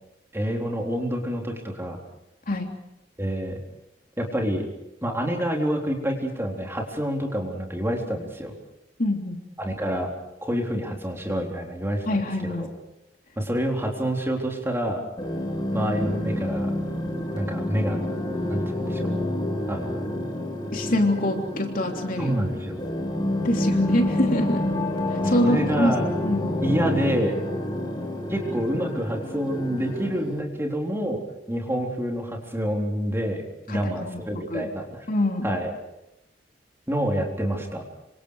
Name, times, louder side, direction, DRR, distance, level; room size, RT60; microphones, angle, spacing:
voice 1, 0.3-2.0 3.2-3.6 4.2-4.6 5.0-8.5 9.6-10.1 10.4-12.0 12.4-12.7 13.4-15.0 15.7-16.7 17.3-18.0 18.5-19.2 19.7-20.1 22.2-22.8 25.2-26.1 26.6-27.3 28.3-31.2 31.5-35.1 35.4-35.7 36.9-37.8, equal, 15° right, 1 dB, 3.9 m, -27 dB
voice 2, 9.0-9.4 12.1-12.7 20.7-22.4 23.4-24.6 25.1-25.9 26.2-26.5 33.7-34.2 34.5-34.7 35.1-35.5, left 1 dB, 50° left, 3 dB, 3.3 m, -25 dB
sound 1, 15.2-30.4, left 1 dB, 25° left, 3.8 m, -28 dB
27.5 x 26.0 x 4.9 m, 0.88 s
head